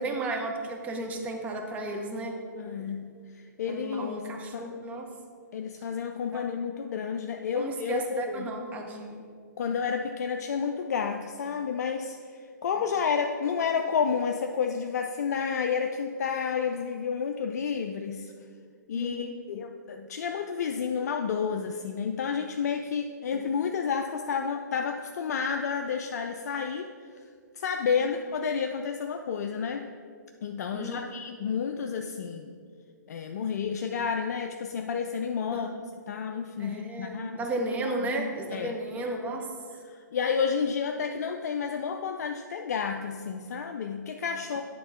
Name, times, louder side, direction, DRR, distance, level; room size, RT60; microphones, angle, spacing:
voice 1, 0.0-2.4 3.7-5.1 6.3-6.4 7.5-9.3 19.0-19.4 23.3-23.4 30.7-31.0 35.5-35.7 36.6-39.5, right 2 dB, 15° right, 2 dB, 0.8 m, -34 dB
voice 2, 2.6-3.0 3.3-4.2 4.5-4.7 5.5-8.5 9.6-18.3 18.9-26.9 27.5-29.9 30.4-32.5 33.1-35.7 36.1-37.5 37.8-38.8 39.8-44.6, left 6 dB, 60° left, 5 dB, 0.4 m, -30 dB
9.5 x 3.7 x 5.6 m, 2.2 s
hypercardioid pair, 135°, 10 cm